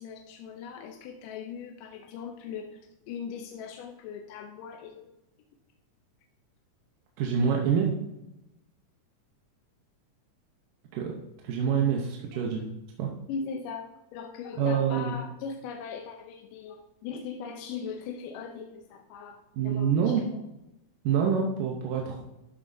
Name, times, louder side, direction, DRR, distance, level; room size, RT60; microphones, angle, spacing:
voice 1, 0.0-5.1 13.3-20.2, left 6 dB, 80° left, 2 dB, 2.3 m, -39 dB
voice 2, 7.2-7.9 10.9-11.1 11.4-12.7 13.0-13.1 14.6-15.2 19.6-20.3 21.0-22.2, right 7 dB, 80° right, 0 dB, 2.6 m, -26 dB
12.5 x 7.4 x 2.7 m, 0.91 s
omnidirectional pair, 3.9 m